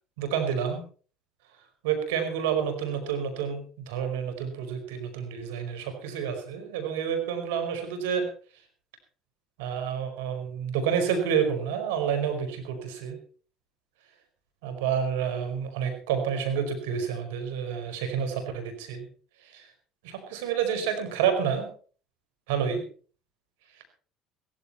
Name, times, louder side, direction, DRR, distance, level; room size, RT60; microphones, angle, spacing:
voice 1, 0.2-0.8 1.8-8.3 9.6-13.2 14.6-19.1 19.4-19.7 20.0-21.7 22.5-22.8 23.7-23.8, right 7 dB, 90° right, 7 dB, 4.9 m, -29 dB
17.0 x 15.0 x 4.4 m, 0.42 s
supercardioid pair, 85°, 0 cm